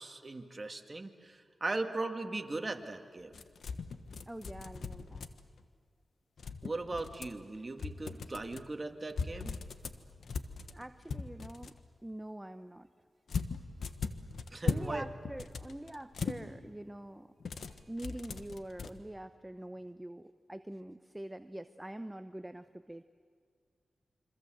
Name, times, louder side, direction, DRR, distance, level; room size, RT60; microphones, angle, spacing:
voice 1, 0.0-3.4 6.6-9.6 14.5-15.1, right 2 dB, 35° right, 5 dB, 2.2 m, -38 dB
sound 1, 3.3-5.6 6.4-7.4 7.8-8.6 9.1-11.8 13.3-14.9 15.2-16.4 17.4-18.9, left 5 dB, 80° left, 1.3 m, -39 dB
voice 2, 4.3-5.3 10.7-11.7 12.0-12.9 14.6-17.3 17.9-23.0, right 1 dB, 15° right, 10 dB, 0.9 m, -44 dB
27.0 x 25.5 x 7.9 m, 2.1 s
cardioid pair, 60°, 0 cm